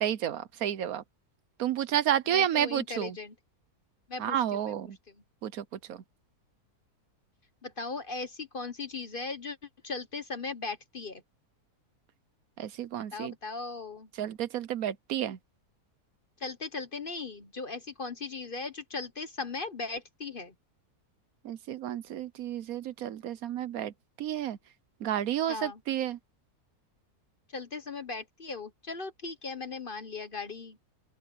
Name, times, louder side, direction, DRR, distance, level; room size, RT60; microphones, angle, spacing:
voice 1, 0.0-1.0 1.6-3.2 4.2-5.0 5.4-6.0 12.6-13.3 14.2-15.4 21.4-24.6 25.0-26.2, right 10 dB, 70° right, 1.1 m, -31 dB
voice 2, 2.3-3.3 4.1-4.7 7.6-9.6 9.8-11.2 13.1-14.1 16.4-20.5 25.5-25.8 27.5-30.8, left 4 dB, 40° left, 1.1 m, -38 dB
open air
omnidirectional pair, 1.7 m